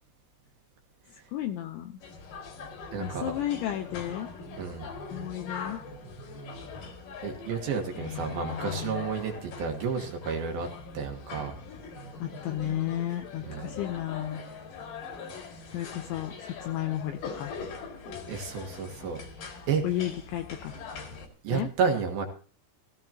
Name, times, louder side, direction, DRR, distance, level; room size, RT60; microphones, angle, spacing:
voice 1, 1.3-2.0 3.0-4.3 5.1-5.8 8.0-9.0 12.2-14.4 15.7-16.3 16.6-17.5 19.8-20.8 21.5-21.7, left 12 dB, 80° left, 5 dB, 2.9 m, -33 dB
sound 1, 2.0-21.3, left 4 dB, 50° left, 3.2 m, -42 dB
voice 2, 2.9-3.3 4.6-4.9 7.2-10.7 10.9-11.5 13.4-13.8 18.3-19.2 19.7-20.0 21.4-22.2, right 5 dB, 65° right, 3 dB, 2.6 m, -31 dB
17.5 x 14.5 x 2.9 m, 0.42 s
omnidirectional pair, 5.9 m